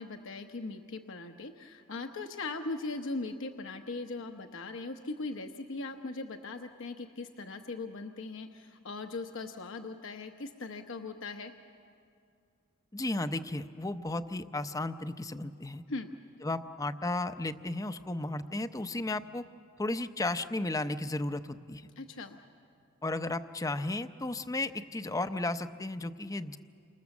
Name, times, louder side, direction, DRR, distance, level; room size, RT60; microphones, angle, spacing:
voice 1, 0.0-11.5 15.9-16.1 22.0-22.4, left 3 dB, 65° left, 5 dB, 1.0 m, -39 dB
voice 2, 12.9-15.8 16.4-19.4 19.8-21.9 23.0-26.6, left 2 dB, 15° left, 10 dB, 0.6 m, -34 dB
29.0 x 26.0 x 7.2 m, 2.4 s
head